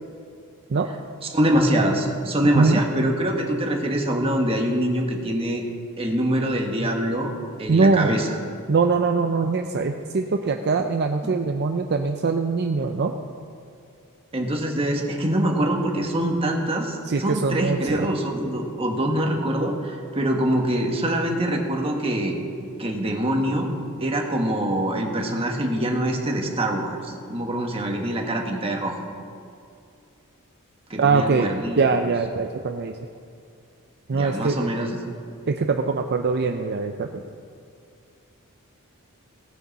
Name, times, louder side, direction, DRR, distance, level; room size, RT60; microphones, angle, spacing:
voice 1, 1.3-5.6 6.0-7.3 7.6-8.3 14.3-22.4 22.8-23.7 24.0-29.0 30.9-31.8 34.1-34.9, right 1 dB, 25° right, 1 dB, 1.4 m, -24 dB
voice 2, 7.7-8.2 8.7-13.1 17.0-18.1 31.0-33.0 34.1-34.7 35.5-37.2, right 4 dB, 50° right, 5 dB, 0.5 m, -22 dB
17.5 x 9.3 x 4.1 m, 2.4 s
head